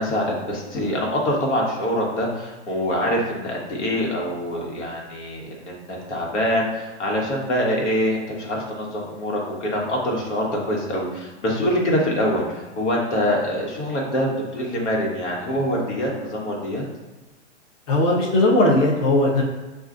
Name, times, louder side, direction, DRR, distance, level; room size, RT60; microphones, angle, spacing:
voice 1, 0.0-16.8, equal, 75° left, -2 dB, 1.3 m, -24 dB
voice 2, 17.9-19.4, left 1 dB, 35° left, -3 dB, 0.7 m, -18 dB
6.2 x 2.4 x 2.5 m, 1.2 s
hypercardioid pair, 135°, 36 cm